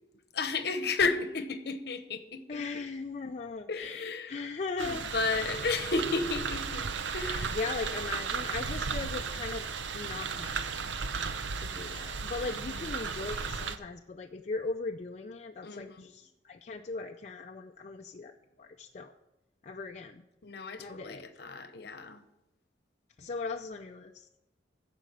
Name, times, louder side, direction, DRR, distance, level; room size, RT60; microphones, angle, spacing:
voice 1, 0.3-2.6 3.7-4.4 4.8-6.9 7.1-7.9 12.5-12.9 15.6-16.1 20.4-22.2, left 4 dB, 60° left, 0.9 m, -33 dB
voice 2, 2.5-5.6 7.4-9.7 9.9-10.7 11.6-19.1 19.6-20.2 20.8-21.3 23.2-24.3, left 4 dB, 40° left, 0.4 m, -39 dB
sound 1, 4.8-13.8, right 5 dB, 90° right, 0.7 m, -35 dB
14.0 x 5.1 x 6.3 m
head